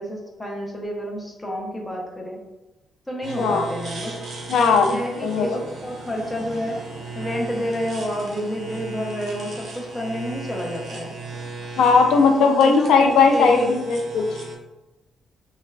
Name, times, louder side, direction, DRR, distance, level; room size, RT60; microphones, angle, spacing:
voice 1, 0.0-2.4 3.1-4.2 4.8-6.8 7.2-11.2 12.4-13.8, equal, 10° left, -2 dB, 0.5 m, -29 dB
sound 1, 3.2-14.6, right 3 dB, 55° right, 0.7 m, -37 dB
voice 2, 4.5-5.5 11.8-14.3, left 5 dB, 75° left, 5 dB, 0.3 m, -18 dB
3.1 x 2.1 x 2.2 m, 1.0 s
cardioid pair, 90°, 0 cm